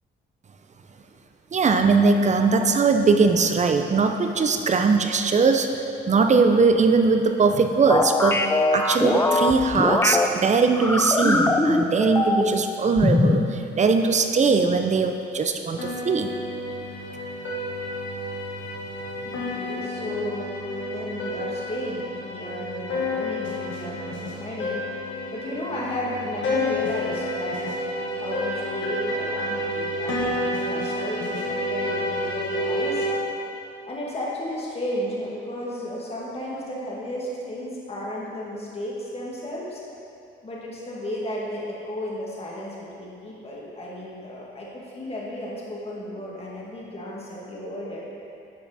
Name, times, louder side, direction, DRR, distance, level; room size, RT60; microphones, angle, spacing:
voice 1, 1.5-5.7 6.1-8.4 8.7-16.3, right 4 dB, 35° right, 6 dB, 0.7 m, -20 dB
sound 1, 7.9-10.3 10.8-12.6 13.0-13.5, left 2 dB, 10° left, 0.5 m, -21 dB
sound 2, 15.8-33.1, left 1 dB, 70° left, 1.6 m, -30 dB
voice 2, 19.2-24.8 25.3-27.6 28.2-33.1 33.9-39.8 40.4-48.1, left 1 dB, 30° left, -5 dB, 2.2 m, -33 dB
11.0 x 5.9 x 4.2 m, 2.7 s
cardioid pair, 90°, 20 cm